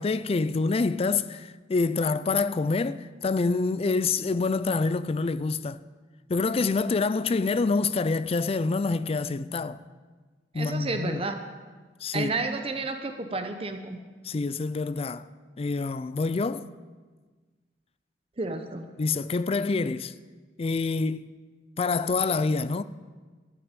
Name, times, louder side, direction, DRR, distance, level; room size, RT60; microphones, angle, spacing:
voice 1, 0.0-5.8 6.3-9.8 10.5-11.2 12.0-12.3 14.2-15.2 15.6-16.6 19.0-20.1 20.6-21.3 21.8-22.8, left 4 dB, 35° left, 0.4 m, -26 dB
voice 2, 10.6-11.4 12.1-14.0 18.4-18.8, right 3 dB, 35° right, 0.8 m, -31 dB
12.5 x 6.0 x 9.1 m
head